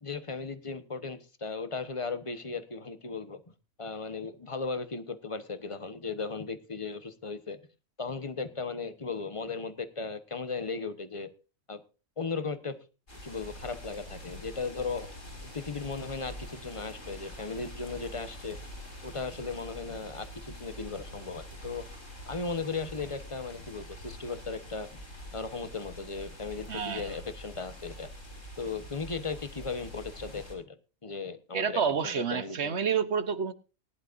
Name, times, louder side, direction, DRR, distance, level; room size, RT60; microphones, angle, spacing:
voice 1, 0.0-3.4 3.8-7.6 8.0-11.3 11.7-11.8 12.2-12.8 13.2-15.1 15.5-18.6 19.0-21.9 22.3-25.0 25.3-28.1 28.6-32.8, left 4 dB, 25° left, 1.1 m, -36 dB
sound 1, 13.1-30.6, equal, 65° left, 5.4 m, -45 dB
voice 2, 26.7-27.1 31.5-33.5, right 7 dB, 55° right, 1.2 m, -29 dB
19.5 x 11.0 x 2.6 m
omnidirectional pair, 1.4 m